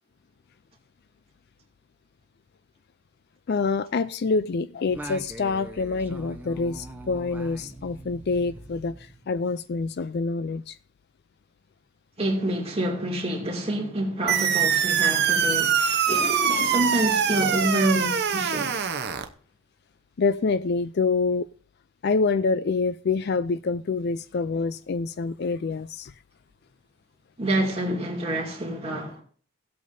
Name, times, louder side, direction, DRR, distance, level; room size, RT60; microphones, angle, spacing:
voice 1, 3.5-10.8 20.2-21.5 22.0-26.1, left 4 dB, 45° left, 0.4 m, -26 dB
Singing, 4.9-9.7, right 1 dB, 10° right, 0.9 m, -42 dB
voice 2, 12.2-18.9 27.4-29.2, right 1 dB, 25° right, 2.4 m, -27 dB
sound 1, 14.3-19.3, right 7 dB, 45° right, 0.8 m, -23 dB
17.0 x 8.3 x 2.7 m
head